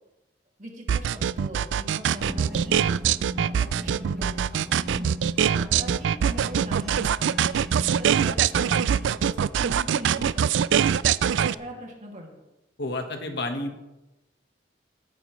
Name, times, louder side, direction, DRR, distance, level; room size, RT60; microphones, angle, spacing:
voice 1, 0.6-2.8 3.4-5.1 5.6-7.4 8.0-10.4 11.3-12.3, equal, 45° right, 0 dB, 2.4 m, -41 dB
sound 1, 0.9-11.5, right 8 dB, 85° right, 0.3 m, -23 dB
sound 2, 2.2-9.3, equal, ahead, 1.3 m, -38 dB
voice 2, 12.8-13.9, left 2 dB, 65° left, 5 dB, 1.4 m, -31 dB
17.0 x 9.2 x 3.2 m, 1.0 s
head